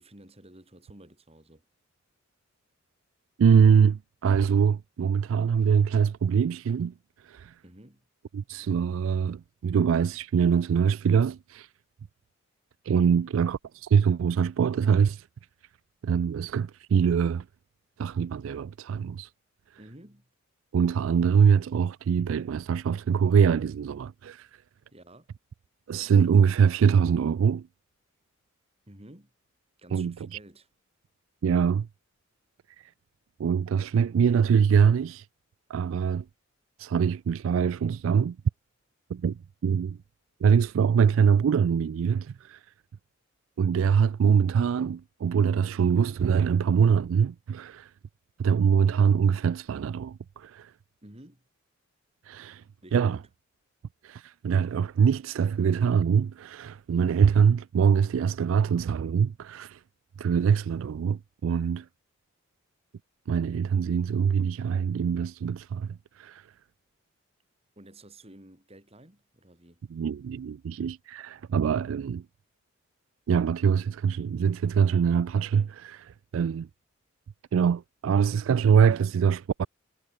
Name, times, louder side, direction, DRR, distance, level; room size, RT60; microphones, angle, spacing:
voice 1, 0.0-1.6 7.6-8.0 13.1-13.3 19.8-20.3 24.9-25.3 28.9-29.3 29.8-30.7 51.0-51.5 52.8-53.2 67.8-69.8, right 1 dB, 30° right, 3.6 m, -51 dB
voice 2, 3.4-6.9 7.2-7.6 8.3-11.7 12.8-15.3 16.0-17.5 18.0-19.3 20.7-24.5 25.9-27.7 29.9-30.1 31.4-31.9 32.8-32.9 33.4-35.3 35.7-36.2 36.8-38.4 39.1-40.0 40.4-42.6 43.6-47.9 48.4-50.7 52.2-52.6 52.9-53.2 54.0-59.8 60.2-61.9 63.3-66.5 69.9-72.2 73.3-76.7 77.5-79.7, right 7 dB, 75° right, 0.3 m, -24 dB
head